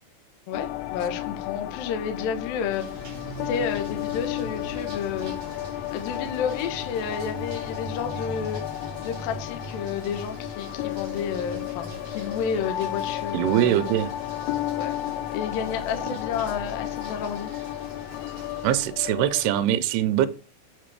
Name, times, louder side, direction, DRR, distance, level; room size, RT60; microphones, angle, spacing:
sound 1, 0.5-19.7, left 14 dB, 85° left, 2.6 m, -33 dB
voice 1, 0.5-3.0 3.5-5.3 5.9-8.6 9.0-13.8 14.8-15.0 15.3-17.5, left 7 dB, 70° left, 2.7 m, -31 dB
sound 2, 2.7-18.9, right 4 dB, 40° right, 2.3 m, -43 dB
voice 2, 13.3-14.1 18.6-20.3, right 12 dB, 80° right, 2.8 m, -22 dB
8.3 x 4.3 x 6.7 m
omnidirectional pair, 4.8 m